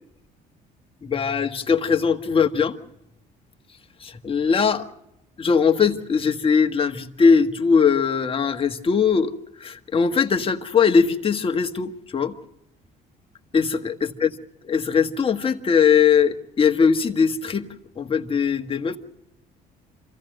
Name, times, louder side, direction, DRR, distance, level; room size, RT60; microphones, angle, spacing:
voice 1, 1.0-2.8 4.0-4.9 5.4-9.3 9.6-12.4 13.5-14.3 14.6-17.7 18.0-19.0, left 6 dB, 35° left, 1.6 m, -20 dB
27.0 x 16.0 x 6.5 m
cardioid pair, 110°, 17 cm